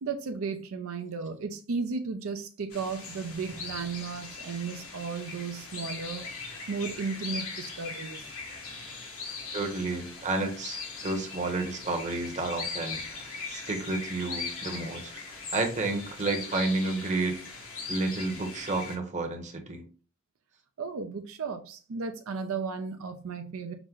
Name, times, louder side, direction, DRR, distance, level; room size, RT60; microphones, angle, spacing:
voice 1, 0.0-8.3 20.8-23.7, right 5 dB, 70° right, 0.5 m, -35 dB
sound 1, 2.7-19.0, left 4 dB, 80° left, 1.9 m, -40 dB
voice 2, 9.5-17.4 17.9-19.8, right 2 dB, 35° right, 0.9 m, -31 dB
5.9 x 2.1 x 3.7 m
head